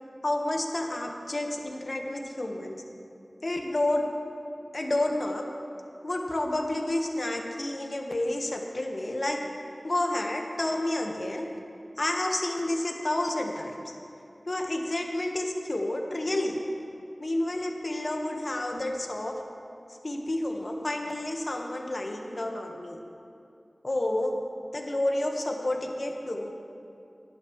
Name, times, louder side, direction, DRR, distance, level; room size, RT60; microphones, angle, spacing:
voice 1, 0.2-2.8 3.4-4.1 4.7-5.4 6.0-9.4 9.8-11.5 12.0-13.9 14.5-16.6 17.2-19.4 20.0-23.0 23.8-24.4 24.7-26.5, left 1 dB, 55° left, 2 dB, 1.4 m, -30 dB
18.5 x 12.0 x 3.3 m, 2.5 s
wide cardioid pair, 45°, 0 cm